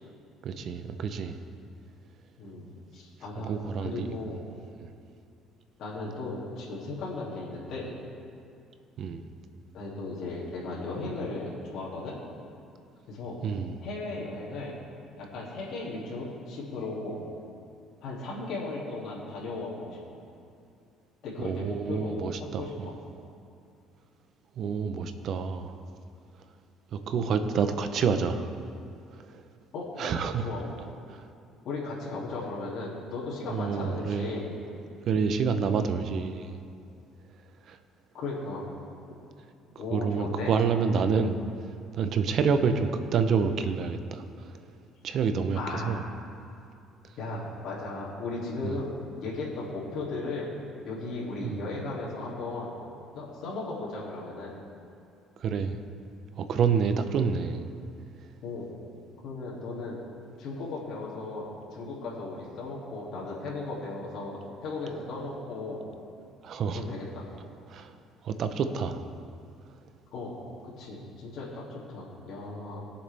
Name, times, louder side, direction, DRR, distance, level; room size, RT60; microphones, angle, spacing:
voice 1, 0.4-1.4 3.5-4.1 4.8-4.9 9.0-9.3 13.4-13.8 21.4-22.9 24.6-25.8 26.9-28.5 29.2-29.4 30.0-30.5 31.1-31.3 33.5-34.3 35.1-36.6 37.7-37.8 39.9-41.3 41.9-44.6 45.0-46.0 48.6-48.8 51.4-51.6 55.4-55.8 56.4-57.7 66.4-66.9 67.7-67.9 68.2-69.1, right 6 dB, 55° right, 8 dB, 0.8 m, -28 dB
voice 2, 2.4-3.5 3.8-4.4 5.8-7.9 9.7-12.2 13.1-13.4 13.8-14.7 15.2-17.2 18.0-20.2 21.2-22.9 27.1-27.3 29.7-30.1 30.4-30.9 31.6-34.5 38.1-38.7 39.8-40.5 45.5-46.0 47.2-50.5 50.8-52.7 53.1-54.5 58.4-58.7 59.2-60.0 60.4-65.8 66.7-67.2 70.1-70.3 70.6-72.8, left 3 dB, 65° left, -6 dB, 2.8 m, -36 dB
21.0 x 7.1 x 3.5 m, 2.5 s
cardioid pair, 105°, 0 cm